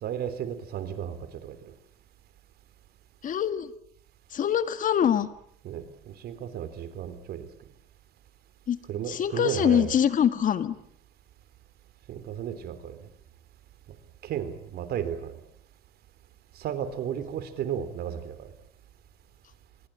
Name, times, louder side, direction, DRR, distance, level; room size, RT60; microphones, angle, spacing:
voice 1, 0.0-1.2 1.4-1.6 5.6-7.5 8.9-9.9 12.1-13.0 14.2-15.4 16.6-18.5, right 9 dB, 70° right, 12 dB, 3.6 m, -33 dB
voice 2, 3.2-3.7 4.3-5.3 8.7-8.8 9.1-10.8, left 9 dB, 50° left, 12 dB, 1.8 m, -24 dB
25.0 x 22.5 x 8.9 m, 0.70 s
cardioid pair, 110°, 17 cm